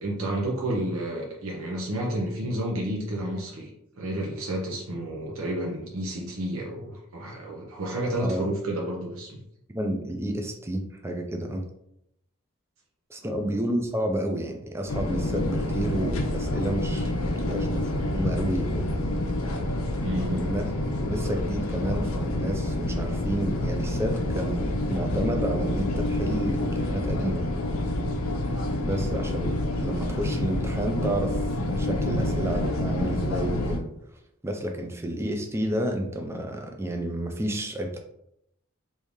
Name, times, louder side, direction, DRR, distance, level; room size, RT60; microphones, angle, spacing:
voice 1, 0.0-9.4 20.0-20.5, right 1 dB, 80° right, -2 dB, 0.7 m, -31 dB
voice 2, 9.7-11.6 13.1-18.9 20.1-20.6 21.0-27.4 28.8-33.9 34.4-38.0, right 1 dB, 10° right, 3 dB, 0.3 m, -31 dB
sound 1, 14.9-33.8, left 1 dB, 85° left, 0.5 m, -28 dB
3.1 x 2.7 x 3.5 m, 0.77 s
head